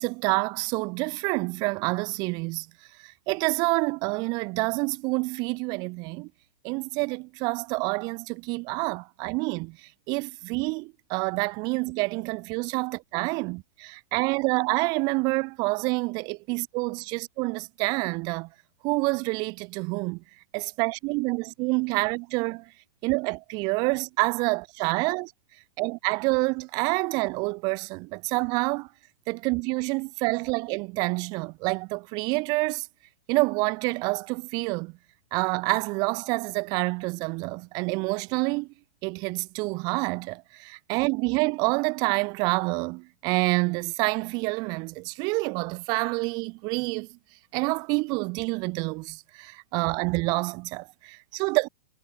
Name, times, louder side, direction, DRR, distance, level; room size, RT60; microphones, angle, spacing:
voice 1, 0.0-2.7 3.3-6.3 6.6-9.8 10.1-18.5 18.8-20.2 20.5-22.6 23.0-25.3 25.8-28.9 29.3-32.9 33.3-34.9 35.3-38.7 39.0-47.1 47.5-51.7, right 28 dB, 20° right, 0.8 m, -27 dB
supercardioid pair, 175°, 20 cm